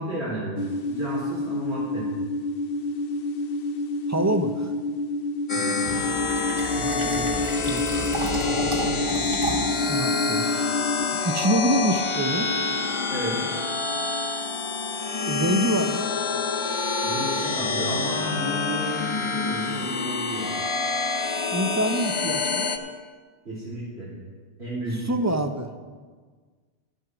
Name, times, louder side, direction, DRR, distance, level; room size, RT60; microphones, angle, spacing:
voice 1, 0.0-2.1 5.5-5.8 13.1-13.4 17.0-20.5 23.5-24.1 24.6-25.3, right 1 dB, 75° right, -10 dB, 3.4 m, -32 dB
sound 1, 0.6-11.0, left 2 dB, 60° left, 0.9 m, -29 dB
voice 2, 4.1-4.7 6.8-7.8 9.9-10.5 11.2-12.5 15.3-16.1 21.5-22.7 25.1-25.7, right 1 dB, 25° right, 6 dB, 0.4 m, -26 dB
sound 2, 5.5-22.8, left 4 dB, 35° left, 0.6 m, -27 dB
Fill (with liquid), 5.8-9.8, right 1 dB, 55° right, 1.6 m, -32 dB
11.0 x 7.8 x 6.0 m, 1.5 s
omnidirectional pair, 1.1 m